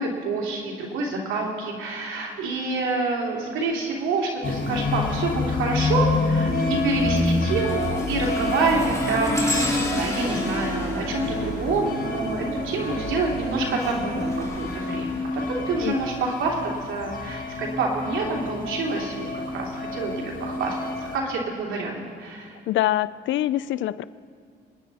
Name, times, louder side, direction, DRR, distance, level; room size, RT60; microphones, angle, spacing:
voice 1, 0.0-22.6, right 3 dB, 85° right, -1 dB, 2.9 m, -27 dB
sound 1, 4.4-21.2, left 3 dB, 45° left, 1.9 m, -28 dB
sound 2, 4.8-5.2 5.7-12.5 13.7-15.9 16.6-16.8 17.7-17.8, left 1 dB, 15° left, 2.9 m, -32 dB
Human voice, 6.5-14.4, right 3 dB, 35° right, 2.0 m, -35 dB
voice 2, 22.7-24.0, left 14 dB, 75° left, 17 dB, 0.4 m, -24 dB
26.0 x 10.0 x 4.1 m, 2.4 s
cardioid pair, 90°, 20 cm